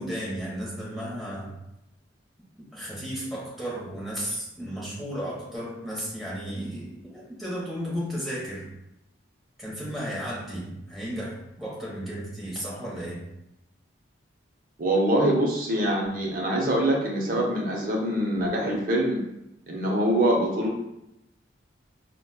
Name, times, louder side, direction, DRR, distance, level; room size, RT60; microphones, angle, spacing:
voice 1, 0.0-1.5 2.7-8.7 9.6-13.2, equal, ahead, -7 dB, 0.9 m, -34 dB
voice 2, 14.8-19.2 19.7-20.7, right 1 dB, 45° right, -2 dB, 0.7 m, -24 dB
4.1 x 2.2 x 2.3 m, 0.86 s
head